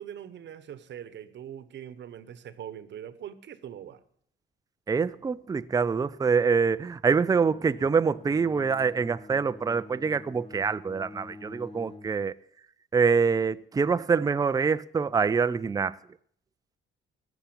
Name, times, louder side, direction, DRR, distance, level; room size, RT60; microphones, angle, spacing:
voice 1, 0.0-4.0, right 10 dB, 65° right, 1.1 m, -42 dB
voice 2, 4.9-12.3 12.9-16.0, right 5 dB, 20° right, 0.4 m, -25 dB
Bowed string instrument, 7.3-12.2, left 2 dB, 30° left, 1.1 m, -47 dB
14.0 x 7.1 x 8.7 m
cardioid pair, 90°, 20 cm